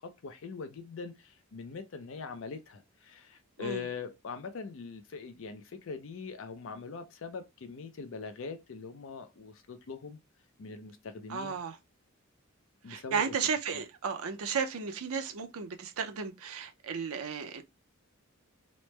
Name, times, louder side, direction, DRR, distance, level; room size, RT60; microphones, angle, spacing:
voice 1, 0.0-10.2 10.6-11.6 12.8-13.2 13.7-13.8, left 5 dB, 60° left, 0.4 m, -42 dB
voice 2, 11.3-11.8 12.9-17.6, right 6 dB, 80° right, 0.5 m, -34 dB
3.1 x 2.0 x 3.1 m
head